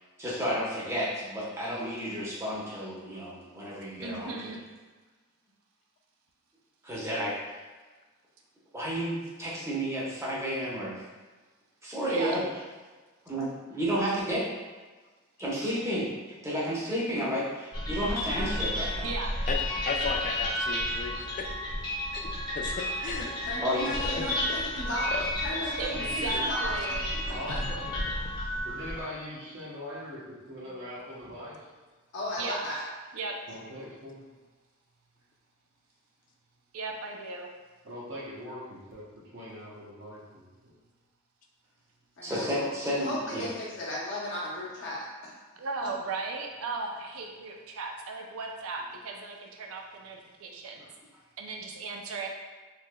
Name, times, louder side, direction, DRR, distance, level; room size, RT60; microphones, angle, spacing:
voice 1, 0.2-4.4 6.8-7.6 8.7-11.0 11.8-12.4 13.3-14.5 15.4-19.1 23.6-23.9 42.2-43.5, equal, 15° right, -7 dB, 0.8 m, -31 dB
voice 2, 4.0-4.6 12.1-12.4 19.0-19.3 25.8-27.2 32.4-32.6 33.1-33.3 36.7-37.5 45.6-50.9 51.4-52.3, right 3 dB, 75° right, 1 dB, 0.5 m, -36 dB
sound 1, 17.7-29.0, left 1 dB, 20° left, 0.8 m, -32 dB
voice 3, 19.9-21.5 22.1-23.5 24.0-24.6 25.1-25.2 27.5-27.8, left 5 dB, 40° left, 3 dB, 0.3 m, -35 dB
voice 4, 23.4-25.1 25.4-27.0 27.3-27.6 32.1-32.9 42.2-45.3 45.8-45.9, left 1 dB, 60° left, -5 dB, 0.8 m, -36 dB
voice 5, 25.9-26.3 27.3-27.8 28.6-30.2 30.5-31.7 33.5-34.2 37.8-40.7 50.8-50.9, equal, 60° right, -6 dB, 0.8 m, -41 dB
3.2 x 2.8 x 2.2 m, 1.3 s
head